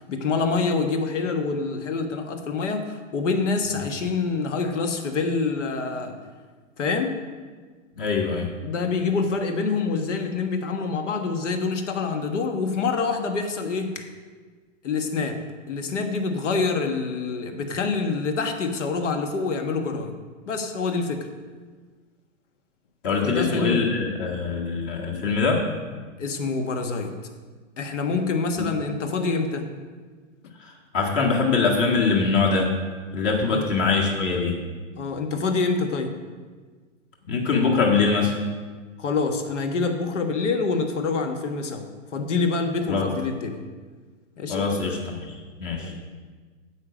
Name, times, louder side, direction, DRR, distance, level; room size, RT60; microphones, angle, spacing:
voice 1, 0.0-6.2 6.8-7.2 8.6-14.1 14.8-15.4 15.7-20.1 20.5-21.3 23.2-23.9 26.2-27.2 27.8-29.7 33.5-33.6 35.0-36.1 39.0-43.6 44.4-44.7 45.8-46.0, left 4 dB, 70° left, 6 dB, 1.5 m, -26 dB
voice 2, 8.0-8.5 23.0-25.6 28.6-28.7 30.9-32.7 33.1-34.5 37.3-38.3 42.9-43.0 44.5-45.3 45.6-45.9, left 4 dB, 40° left, -1 dB, 1.7 m, -23 dB
9.4 x 7.7 x 5.1 m, 1.4 s
hypercardioid pair, 120°, 38 cm